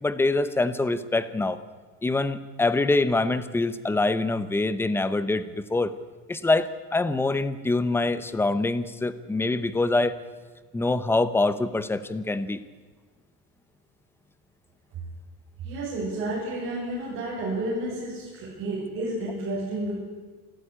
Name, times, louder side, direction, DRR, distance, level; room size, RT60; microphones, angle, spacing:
voice 1, 0.0-1.6 2.0-6.0 6.3-10.2 10.7-12.6, left 2 dB, 5° left, 14 dB, 0.8 m, -25 dB
voice 2, 15.6-19.9, right 1 dB, 35° right, -7 dB, 7.7 m, -31 dB
27.0 x 13.0 x 10.0 m, 1.4 s
cardioid pair, 170°, 36 cm